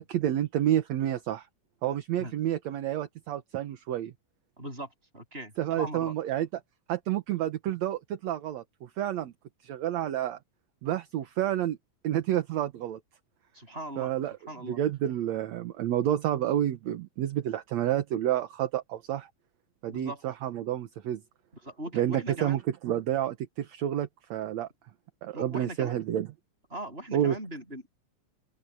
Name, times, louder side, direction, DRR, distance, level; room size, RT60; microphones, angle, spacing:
voice 1, 0.0-1.5 1.8-4.1 5.6-6.6 6.9-9.3 9.6-10.4 10.8-11.8 12.0-13.0 14.0-14.4 14.6-19.3 19.8-21.2 21.9-24.7 25.2-26.3 27.1-27.4, right 11 dB, 65° right, 2.2 m, -29 dB
voice 2, 4.6-4.9 5.1-6.1 13.5-14.1 14.5-14.8 19.9-20.2 21.6-22.6 25.3-26.0 26.7-27.9, right 1 dB, 15° right, 7.6 m, -39 dB
open air
omnidirectional pair, 3.7 m